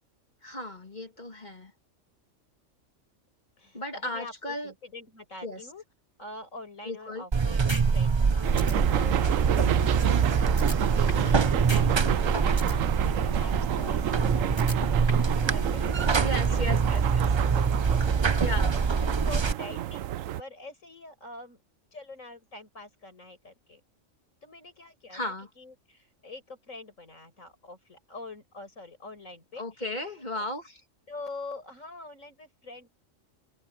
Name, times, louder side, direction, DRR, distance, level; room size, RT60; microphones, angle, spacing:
voice 1, 0.4-1.7 3.7-4.7 5.4-5.6 6.8-7.2 16.2-17.2 18.4-18.7 25.1-25.5 29.6-30.8, left 1 dB, 35° left, 2.7 m, -35 dB
voice 2, 3.6-5.8 6.2-14.8 15.5-17.1 17.5-20.1 20.4-21.6 21.9-23.8 24.4-29.8 30.3-30.5 31.1-32.9, left 2 dB, 85° left, 6.9 m, -45 dB
Buzz, 7.3-19.5, right 5 dB, 35° right, 0.4 m, -25 dB
sound 1, 7.7-7.8 8.2-8.3 8.6-8.7 10.6-11.3 11.7-11.8 12.2-12.7 14.6-15.3, right 1 dB, 20° right, 3.7 m, -35 dB
sound 2, 8.4-20.4, right 12 dB, 85° right, 1.1 m, -30 dB
open air
omnidirectional pair, 1.3 m